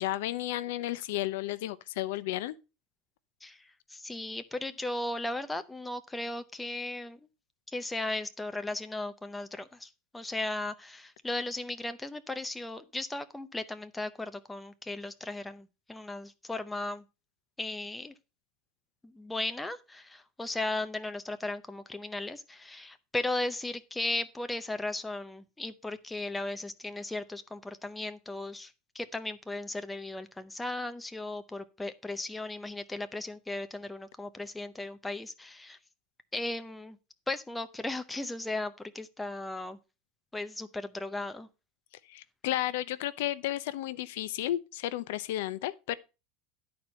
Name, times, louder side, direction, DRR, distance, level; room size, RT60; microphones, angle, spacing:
voice 1, 0.0-2.5 42.1-45.9, left 14 dB, 75° left, 0.7 m, -33 dB
voice 2, 3.4-7.2 7.7-17.0 17.6-18.1 19.0-35.8 36.3-37.0 37.3-39.8 40.3-41.5, left 2 dB, 5° left, 0.6 m, -36 dB
11.5 x 4.4 x 6.3 m
supercardioid pair, 165°, 0 cm